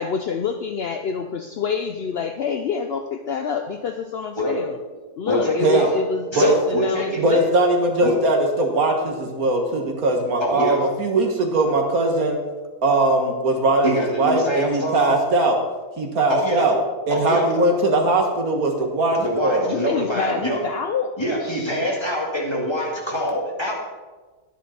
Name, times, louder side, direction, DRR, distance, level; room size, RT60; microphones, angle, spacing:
voice 1, 0.0-4.7 5.2-7.5 19.7-21.1 21.4-22.0, left 6 dB, 75° left, 6 dB, 0.5 m, -27 dB
voice 2, 5.3-5.9 6.3-7.2 8.0-8.1 10.4-10.8 13.8-15.2 16.3-16.7 17.1-17.5 19.2-20.6 21.2-23.7, equal, 15° left, -3 dB, 2.3 m, -24 dB
voice 3, 7.2-12.4 12.8-15.6 16.0-16.8 17.1-19.7, right 2 dB, 65° right, 2 dB, 1.9 m, -20 dB
11.0 x 10.0 x 4.3 m, 1.3 s
omnidirectional pair, 1.7 m